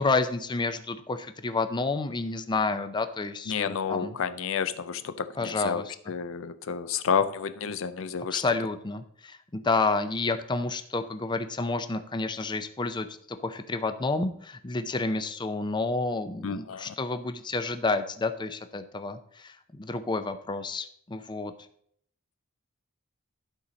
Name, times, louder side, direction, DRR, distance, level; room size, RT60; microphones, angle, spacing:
voice 1, 0.0-4.1 5.4-6.0 8.3-13.2 13.4-21.5, left 3 dB, 20° left, 9 dB, 0.5 m, -30 dB
voice 2, 3.5-5.8 6.1-8.4 16.4-16.9, left 6 dB, 70° left, 12 dB, 0.5 m, -30 dB
11.5 x 4.1 x 5.1 m, 0.65 s
head